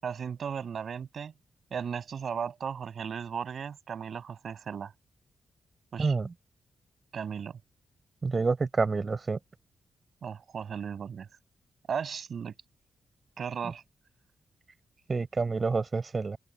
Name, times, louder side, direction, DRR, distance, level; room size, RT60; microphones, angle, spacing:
voice 1, 0.0-1.3 1.7-4.9 5.9-6.1 7.1-7.6 10.2-11.3 11.9-12.5 13.4-13.8, right 7 dB, 65° right, 7.1 m, -36 dB
voice 2, 6.0-6.3 8.2-9.4 15.1-16.4, right 4 dB, 40° right, 4.7 m, -28 dB
open air
cardioid pair, 80°, 0 cm